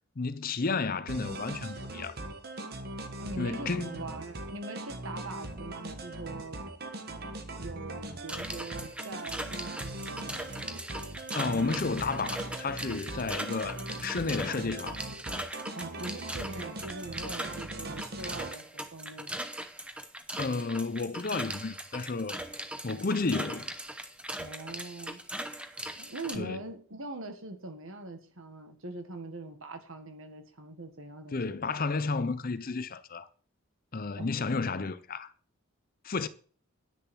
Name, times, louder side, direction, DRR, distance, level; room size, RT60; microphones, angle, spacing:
voice 1, 0.2-2.2 3.4-4.0 11.3-15.1 20.4-22.4 22.8-23.7 26.3-26.6 31.3-33.3 33.9-35.3 36.0-36.3, left 4 dB, 40° left, 0.6 m, -32 dB
sound 1, 1.1-18.5, right 2 dB, 45° right, 1.3 m, -40 dB
voice 2, 3.2-6.6 7.6-10.6 11.3-11.8 15.7-19.4 24.4-25.2 26.0-31.6 34.2-34.3, right 2 dB, 65° right, 1.7 m, -42 dB
sound 2, 8.3-26.4, right 1 dB, 5° right, 0.8 m, -40 dB
10.0 x 6.7 x 6.0 m
head